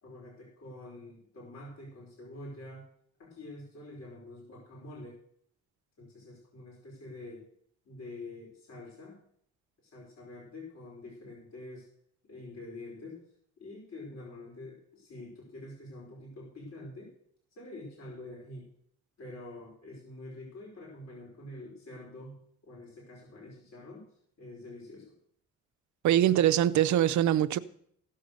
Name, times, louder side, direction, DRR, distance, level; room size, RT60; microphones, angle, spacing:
voice 1, 0.0-2.8 3.2-5.1 6.0-7.5 7.8-9.2 9.8-11.9 12.3-13.2 13.6-17.1 17.5-18.6 19.2-24.1 24.4-25.1, left 2 dB, 60° left, 4.7 m, -46 dB
voice 2, 26.0-27.6, right 11 dB, 70° right, 0.7 m, -23 dB
16.0 x 6.7 x 6.6 m
cardioid pair, 90°, 30 cm